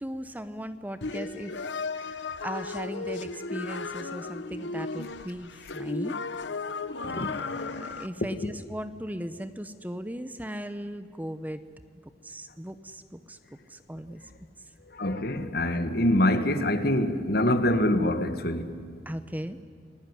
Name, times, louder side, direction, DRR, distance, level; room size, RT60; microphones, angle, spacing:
voice 1, 0.0-1.5 1.9-6.2 7.1-11.6 12.2-13.4 13.7-14.2 19.1-19.6, equal, 10° right, 11 dB, 0.8 m, -38 dB
sound 1, 1.0-8.1, left 3 dB, 80° left, 1.0 m, -35 dB
Drum, 7.0-9.1, left 1 dB, 65° right, 5.1 m, -49 dB
voice 2, 14.9-18.7, left 1 dB, 55° left, 9 dB, 1.8 m, -25 dB
30.0 x 19.5 x 9.9 m, 2.1 s
head